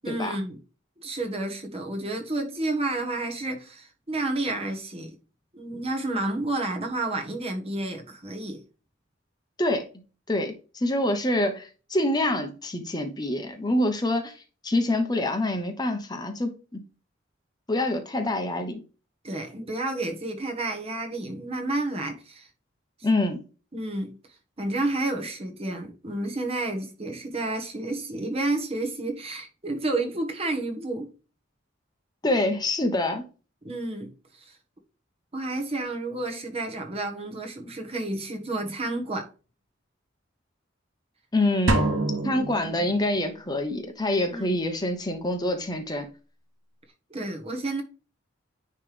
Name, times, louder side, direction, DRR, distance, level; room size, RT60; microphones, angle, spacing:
voice 1, 0.0-0.6 1.0-5.1 5.5-8.6 19.2-22.5 23.7-24.2 24.6-31.1 33.6-34.6 35.3-39.3 44.2-44.5 47.1-47.8, right 2 dB, 30° right, 1.3 m, -30 dB
voice 2, 10.3-14.3 14.6-16.8 17.7-18.8 23.0-23.4 32.2-33.2 41.3-41.8 42.2-46.1, left 1 dB, 20° left, 1.0 m, -26 dB
sound 1, 41.7-43.5, right 2 dB, 85° right, 1.4 m, -26 dB
9.8 x 3.3 x 3.4 m
head